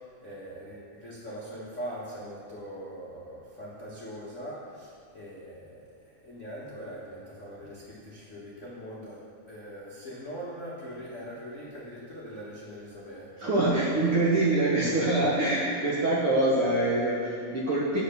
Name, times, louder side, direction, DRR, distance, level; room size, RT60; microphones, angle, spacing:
voice 1, 0.0-13.5 14.9-15.4, equal, 75° left, -7 dB, 0.6 m, -42 dB
voice 2, 13.4-18.0, right 2 dB, 65° right, -6 dB, 1.4 m, -25 dB
9.0 x 6.6 x 6.8 m, 2.2 s
omnidirectional pair, 4.1 m